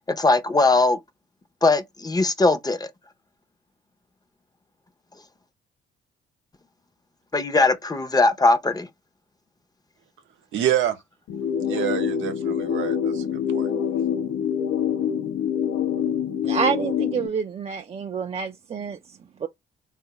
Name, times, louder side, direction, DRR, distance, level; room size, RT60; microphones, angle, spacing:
voice 1, 0.1-1.0 1.6-2.9 7.3-8.9, left 3 dB, 20° left, 0.6 m, -20 dB
voice 2, 10.5-11.0 11.6-13.7, right 11 dB, 80° right, 0.7 m, -27 dB
sound 1, 11.3-17.3, left 8 dB, 80° left, 0.7 m, -25 dB
voice 3, 16.4-19.5, right 6 dB, 30° right, 0.4 m, -28 dB
3.6 x 2.4 x 2.8 m
cardioid pair, 90°, 20 cm